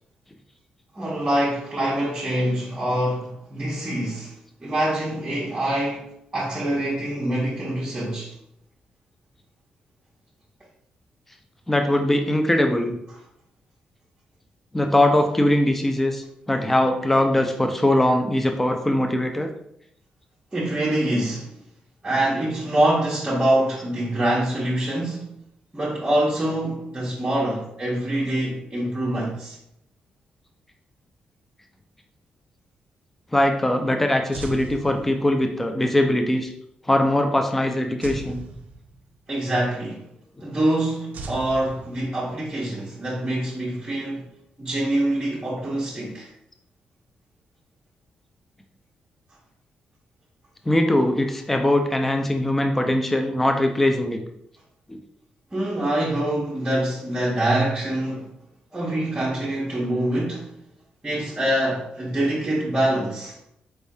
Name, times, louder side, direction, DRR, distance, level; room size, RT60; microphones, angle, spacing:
voice 1, 0.9-4.3 4.6-8.3 20.5-21.5 22.0-25.3 25.7-29.6 39.3-40.0 40.4-44.2 44.6-46.3 55.5-58.3 58.7-60.5 61.0-63.3, right 1 dB, 15° right, 0.7 m, -25 dB
voice 2, 11.7-13.0 14.7-19.5 33.3-36.5 36.9-38.4 50.7-54.2 54.9-55.0, left 1 dB, 10° left, 0.3 m, -21 dB
sound 1, 34.3-35.6 38.0-39.3 41.1-42.4, right 3 dB, 70° right, 0.4 m, -38 dB
4.4 x 3.4 x 2.6 m
wide cardioid pair, 160°, 3 cm